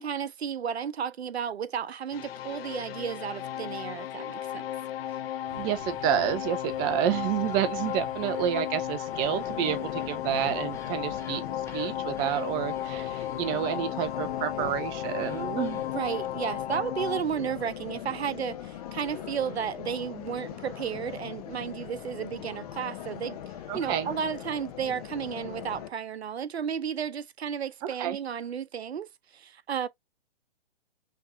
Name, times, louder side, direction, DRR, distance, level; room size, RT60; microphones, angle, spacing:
voice 1, 0.0-4.6 15.9-23.4 23.7-29.1 29.3-29.9, right 8 dB, 85° right, 0.7 m, -33 dB
sound 1, 2.1-17.2, left 11 dB, 70° left, 0.5 m, -34 dB
sound 2, 5.5-16.5, equal, 10° left, 1.2 m, -50 dB
voice 2, 5.5-11.4 11.7-15.8 23.7-24.1 28.0-28.2, right 10 dB, 15° right, 0.4 m, -29 dB
sound 3, 9.1-25.9, left 10 dB, 40° left, 0.9 m, -41 dB
5.9 x 3.0 x 2.6 m
hypercardioid pair, 140°, 31 cm